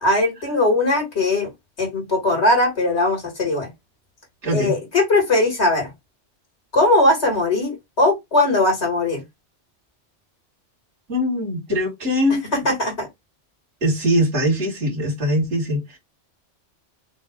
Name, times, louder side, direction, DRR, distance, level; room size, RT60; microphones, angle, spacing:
voice 1, 0.0-1.5 1.8-3.7 4.5-5.9 6.7-9.2 12.5-13.1, left 2 dB, 60° left, 2.8 m, -19 dB
voice 2, 4.4-4.7 11.1-12.4 13.8-16.0, equal, 75° right, 2.5 m, -21 dB
6.2 x 2.2 x 3.6 m
omnidirectional pair, 1.2 m